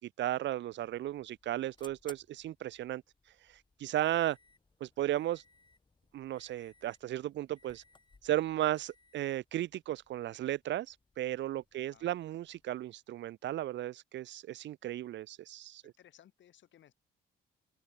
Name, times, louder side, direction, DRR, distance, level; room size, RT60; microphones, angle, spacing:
voice 1, 0.0-3.0 3.5-4.4 4.8-5.4 6.1-7.8 8.2-15.8, right 13 dB, 65° right, 0.6 m, -35 dB
sound 1, 0.6-13.0, left 3 dB, 25° left, 3.8 m, -64 dB
voice 2, 11.7-12.1 15.8-16.9, left 10 dB, 70° left, 5.7 m, -61 dB
cardioid pair, 90°, 20 cm